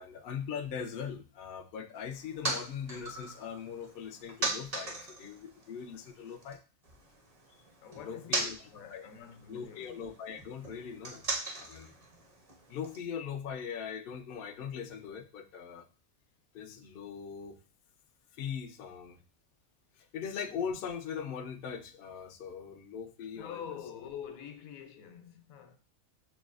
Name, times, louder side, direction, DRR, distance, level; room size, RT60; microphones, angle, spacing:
voice 1, 0.0-6.6 7.9-8.6 8.9-9.1 9.5-11.2 11.5-11.9 12.7-15.9 16.5-17.6 18.3-19.2 20.0-23.6, left 7 dB, 65° left, 0.5 m, -40 dB
sound 1, 1.9-6.6 6.8-13.0, right 2 dB, 35° right, 0.6 m, -40 dB
voice 2, 7.8-10.0 19.9-20.1 23.3-25.8, left 8 dB, 80° left, 1.0 m, -46 dB
6.1 x 2.3 x 2.4 m
omnidirectional pair, 1.4 m